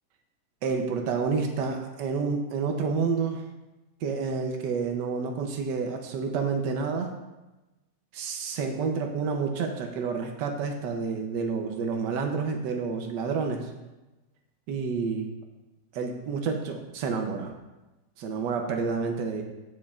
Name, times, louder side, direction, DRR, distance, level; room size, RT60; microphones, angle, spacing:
voice 1, 0.6-3.4 4.0-7.1 8.1-13.7 14.7-15.3 15.9-17.5 18.2-19.4, right 5 dB, 80° right, 3 dB, 1.4 m, -29 dB
15.5 x 5.2 x 2.4 m, 1.1 s
omnidirectional pair, 1.9 m